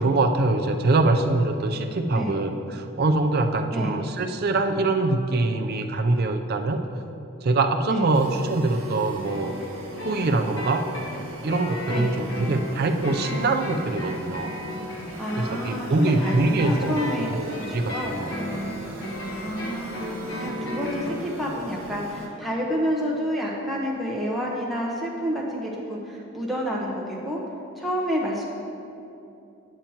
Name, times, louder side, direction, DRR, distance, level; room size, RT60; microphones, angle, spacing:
voice 1, 0.0-6.8 7.4-9.5 10.0-10.9 11.4-14.6 15.4-18.3, right 2 dB, 45° right, 6 dB, 0.4 m, -24 dB
voice 2, 2.1-2.4 3.7-4.0 7.9-8.2 11.9-12.2 15.2-18.2 19.4-27.4 27.8-28.5, equal, ahead, -4 dB, 1.0 m, -29 dB
sound 1, 8.1-22.3, right 1 dB, 90° right, 1.5 m, -39 dB
sound 2, 9.2-21.2, left 1 dB, 60° left, 1.3 m, -34 dB
8.9 x 8.8 x 2.9 m, 2.8 s
head